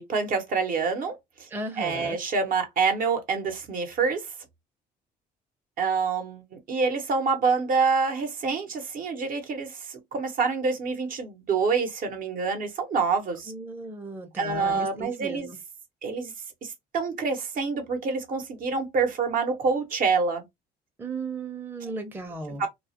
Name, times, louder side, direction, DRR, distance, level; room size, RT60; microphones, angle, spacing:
voice 1, 0.0-1.5 1.8-4.3 5.8-13.5 14.4-15.5 16.0-16.3 16.6-20.4 21.8-21.9 22.6-22.7, right 5 dB, 55° right, 0.8 m, -27 dB
voice 2, 1.5-2.2 13.5-15.6 21.0-22.6, right 2 dB, 10° right, 0.5 m, -36 dB
2.3 x 2.0 x 2.7 m
cardioid pair, 110°, 17 cm